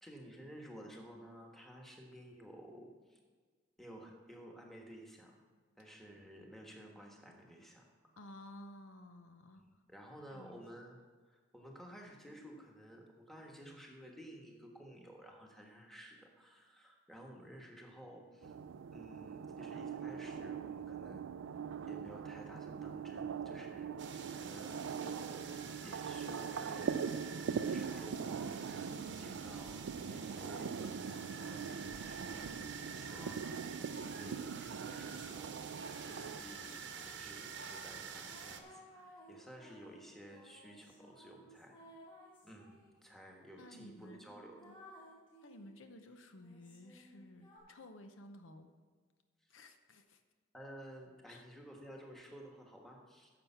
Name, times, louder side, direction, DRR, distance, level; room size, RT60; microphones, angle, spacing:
voice 1, 0.0-3.2 3.8-5.4 5.8-8.1 9.6-11.0 11.3-18.5 18.9-21.6 21.8-25.5 25.8-27.3 27.6-35.6 36.0-36.8 37.1-41.8 42.4-44.6 50.5-53.3, equal, ahead, 0 dB, 1.3 m, -54 dB
voice 2, 8.2-9.8 10.2-10.6 43.6-44.3 44.6-44.8 45.4-48.7 49.5-50.2 51.3-51.4, left 1 dB, 80° left, 7 dB, 0.8 m, -54 dB
sound 1, 18.4-36.4, right 6 dB, 80° right, 0.4 m, -42 dB
sound 2, 24.0-38.6, right 6 dB, 60° right, 0.9 m, -48 dB
sound 3, 33.0-34.2 34.9-37.5 38.3-43.0 43.5-43.6 44.0-45.8 46.4-47.6, equal, 25° left, 3.5 m, -59 dB
10.5 x 7.0 x 5.7 m, 1.5 s
head